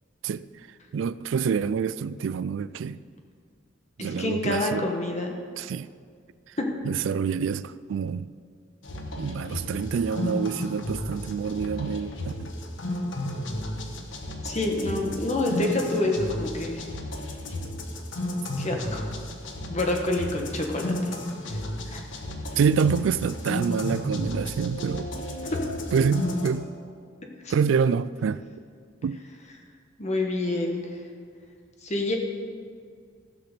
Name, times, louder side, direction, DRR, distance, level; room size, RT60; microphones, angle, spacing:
voice 1, 0.9-3.0 4.0-4.9 5.6-5.9 6.9-8.3 9.2-12.5 22.6-25.1 25.9-26.7 27.5-28.4 29.0-29.2, right 6 dB, 90° right, 0.3 m, -26 dB
voice 2, 4.0-5.3 6.6-6.7 14.4-16.8 18.6-19.0 19.7-20.9 21.5-21.6 21.9-22.0 27.4-27.7 30.0-30.9 31.8-32.1, left 2 dB, 40° left, 1.4 m, -27 dB
sound 1, 8.8-26.5, left 1 dB, 85° left, 1.2 m, -33 dB
15.0 x 5.9 x 6.7 m
head